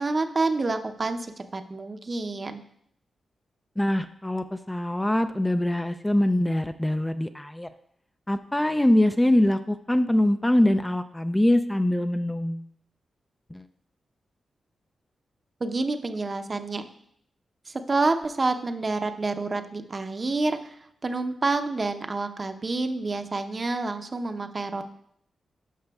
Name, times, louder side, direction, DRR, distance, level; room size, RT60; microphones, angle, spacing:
voice 1, 0.0-2.6 15.6-16.8 17.7-20.7 21.0-24.8, right 3 dB, 40° right, 7 dB, 0.7 m, -28 dB
voice 2, 3.8-7.7 8.3-12.7 13.5-13.7, left 1 dB, 10° left, 9 dB, 0.4 m, -23 dB
12.0 x 5.8 x 2.4 m, 0.69 s
cardioid pair, 65°, 0 cm